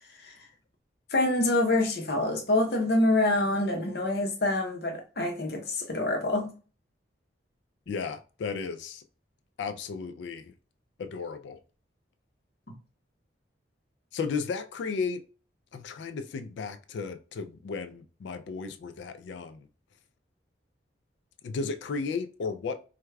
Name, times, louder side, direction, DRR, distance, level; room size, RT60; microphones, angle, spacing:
voice 1, 0.2-0.5 1.1-6.5, left 2 dB, 55° left, 0.7 m, -26 dB
voice 2, 7.9-9.0 9.6-10.5 11.0-11.6 14.1-15.2 15.7-19.7 21.4-22.8, left 5 dB, 70° left, 0.3 m, -34 dB
4.6 x 2.2 x 2.2 m
head